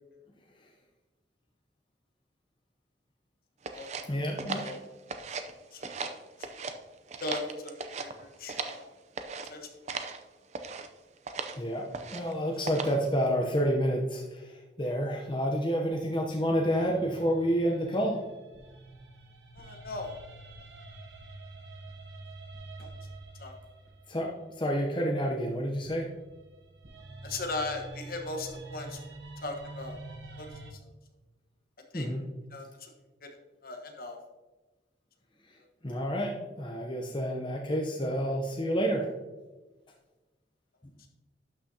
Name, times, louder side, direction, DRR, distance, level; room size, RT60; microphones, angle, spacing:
sound 1, 3.6-5.5 5.8-6.8 7.1-8.8 9.2-9.5 9.9-10.2 10.5-10.9 11.3-11.6 11.9-12.3 12.7-13.1, right 4 dB, 40° right, 0.5 m, -37 dB
voice 1, 4.1-4.7 11.6-18.2 24.1-24.3 24.6-26.1 31.9-32.3 35.8-39.1, equal, 25° left, 0 dB, 0.7 m, -29 dB
voice 2, 7.2-8.9 9.4-9.7 19.5-20.2 22.8-22.9 23.4-23.5 27.2-29.1 29.4-30.0 30.4-30.8 31.9-32.1 32.5-32.9 33.2-33.3 33.6-34.2, left 2 dB, 55° left, 3 dB, 1.2 m, -38 dB
sound 2, 15.9-25.0 25.8-30.7, right 2 dB, 70° right, 1.0 m, -47 dB
12.0 x 6.1 x 2.8 m, 1.2 s
head